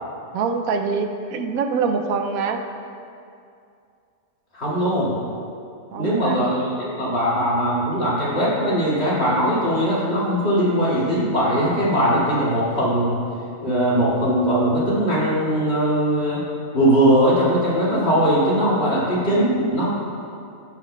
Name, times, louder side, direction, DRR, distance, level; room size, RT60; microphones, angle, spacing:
voice 1, 0.3-2.6 5.9-6.5, right 5 dB, 85° right, 6 dB, 1.1 m, -24 dB
voice 2, 4.5-5.1 5.9-13.2 13.6-16.4 16.7-19.9, equal, 50° left, -9 dB, 2.5 m, -20 dB
15.5 x 6.0 x 2.3 m, 2.5 s
omnidirectional pair, 1.5 m